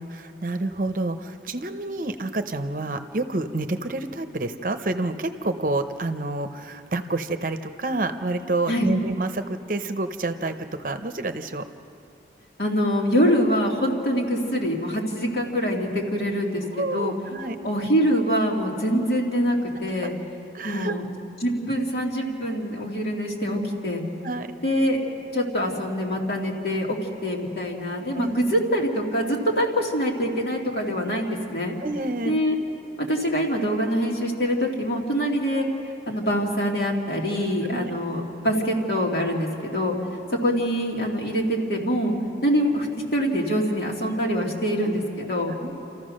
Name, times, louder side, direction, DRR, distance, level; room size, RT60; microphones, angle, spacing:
voice 1, 0.1-10.5 10.8-11.6 16.8-17.6 20.0-20.1 20.5-21.0 24.2-24.5 28.2-28.4 31.8-32.4 37.7-37.9 44.8-44.9 45.6-45.7, right 2 dB, 50° right, 8 dB, 0.8 m, -28 dB
voice 2, 12.6-17.1 17.6-20.1 20.6-21.0 21.4-24.0 24.6-25.0 25.3-27.0 27.2-31.8 32.3-32.6 33.0-35.7 36.1-39.9 40.4-42.1 42.4-42.9 43.1-45.6, equal, 60° left, -1 dB, 2.6 m, -24 dB
29.5 x 14.5 x 6.5 m, 2.9 s
head